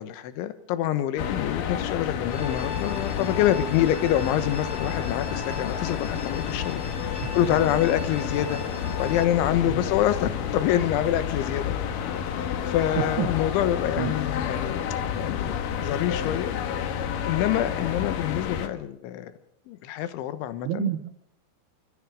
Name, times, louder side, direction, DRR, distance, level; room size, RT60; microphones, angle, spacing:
voice 1, 0.0-8.6 9.0-11.8 12.3-14.8 15.2-16.5 17.3-19.3 19.7-20.9, left 11 dB, 80° left, 11 dB, 3.6 m, -26 dB
sound 1, 1.2-18.7, left 8 dB, 65° left, 2.3 m, -30 dB
sound 2, 2.3-9.2, left 3 dB, 10° left, 1.2 m, -40 dB
voice 2, 13.0-13.3 14.0-14.1 20.6-21.1, right 13 dB, 70° right, 9 dB, 2.7 m, -28 dB
29.0 x 14.5 x 6.6 m, 0.74 s
omnidirectional pair, 5.5 m